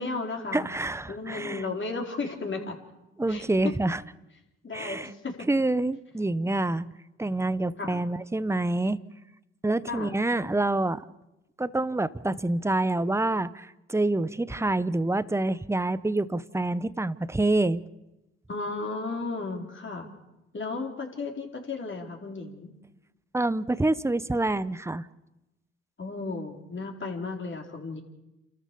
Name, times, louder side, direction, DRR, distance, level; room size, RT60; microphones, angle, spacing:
voice 1, 0.0-0.7 1.1-2.8 3.3-3.8 4.6-5.5 7.8-8.0 9.9-10.1 18.5-20.1 20.5-22.7 26.0-28.0, left 3 dB, 40° left, 2 dB, 4.3 m, -34 dB
voice 2, 0.5-1.6 3.2-4.0 4.7-5.1 5.5-6.9 7.2-9.0 9.6-11.0 11.6-17.8 23.3-25.1, right 2 dB, 10° right, 17 dB, 0.9 m, -27 dB
29.0 x 13.5 x 6.9 m, 0.95 s
supercardioid pair, 55°, 31 cm